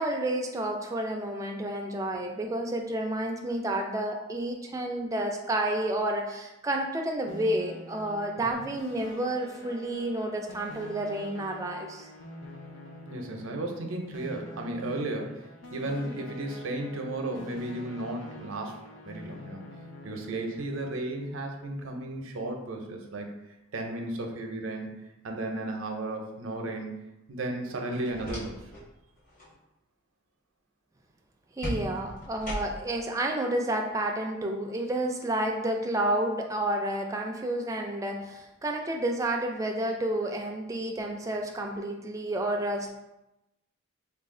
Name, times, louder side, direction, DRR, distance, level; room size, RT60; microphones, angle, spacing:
voice 1, 0.0-12.1 31.6-42.9, right 1 dB, 15° right, 2 dB, 0.3 m, -30 dB
sound 1, 7.3-20.8, left 1 dB, 70° left, 0.5 m, -46 dB
voice 2, 13.1-18.8 19.0-19.6 20.0-23.3 23.7-24.9 25.2-27.0 27.3-28.6, right 2 dB, 85° right, 3 dB, 0.5 m, -34 dB
sound 2, 27.9-28.9 29.2-29.5 31.6-33.0, equal, 40° left, 1.4 m, -37 dB
3.2 x 2.3 x 3.6 m, 0.93 s
head